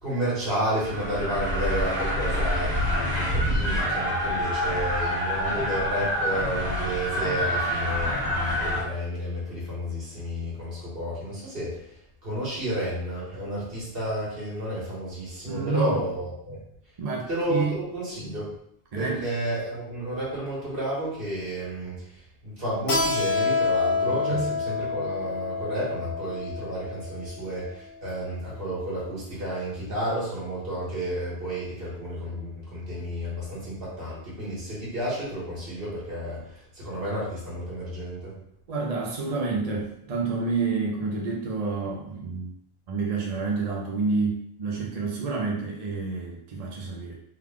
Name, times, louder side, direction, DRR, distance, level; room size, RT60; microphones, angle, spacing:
voice 1, 0.0-16.6 17.3-18.5 18.9-38.4, right 1 dB, 65° right, -7 dB, 1.6 m, -31 dB
sound 1, 0.7-8.8, equal, 90° right, 1.4 m, -27 dB
voice 2, 15.5-16.0 17.0-17.7 18.9-19.3 24.3-24.5 38.7-42.5 42.9-47.2, right 4 dB, 45° right, -1 dB, 0.6 m, -29 dB
Keyboard (musical), 22.9-28.2, left 4 dB, 60° left, 0.9 m, -28 dB
3.4 x 2.3 x 3.5 m, 0.70 s
omnidirectional pair, 1.0 m